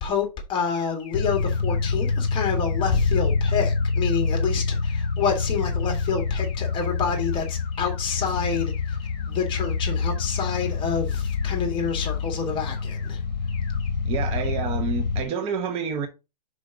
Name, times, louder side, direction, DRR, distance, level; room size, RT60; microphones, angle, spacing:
voice 1, 0.0-9.0 9.3-13.2, left 6 dB, 25° left, 2.1 m, -28 dB
sound 1, 0.7-10.7 11.1-11.5 11.9-12.3 12.7-13.1 13.5-13.9 14.3-14.7, left 6 dB, 40° left, 3.4 m, -47 dB
sound 2, 1.1-15.2, left 4 dB, 90° left, 0.6 m, -26 dB
voice 2, 14.0-16.1, right 6 dB, 30° right, 0.8 m, -28 dB
5.2 x 5.0 x 4.6 m
hypercardioid pair, 130°, 21 cm